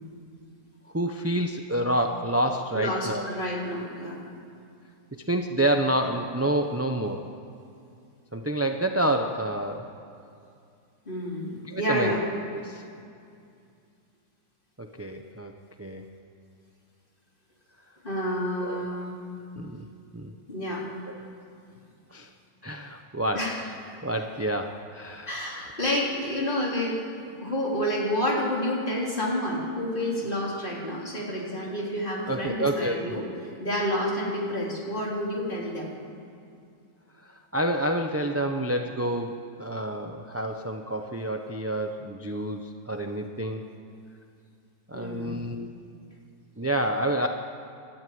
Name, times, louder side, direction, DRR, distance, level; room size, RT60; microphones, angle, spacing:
voice 1, 0.9-3.3 5.1-7.3 8.3-9.9 11.6-12.2 12.5-12.8 14.8-15.5 15.8-16.1 18.6-18.8 19.6-19.9 20.1-20.4 21.1-21.2 22.1-22.3 22.6-23.7 24.0-25.3 32.3-33.2 37.3-43.6 44.9-45.7 46.6-47.3, right 1 dB, 15° right, 4 dB, 0.5 m, -28 dB
voice 2, 2.7-4.2 11.1-11.5 11.8-12.2 18.0-19.1 20.5-20.8 23.3-23.6 25.3-33.2 33.6-35.9 44.9-45.3, equal, 30° left, -3 dB, 4.0 m, -29 dB
29.0 x 13.0 x 9.4 m, 2.5 s
omnidirectional pair, 1.9 m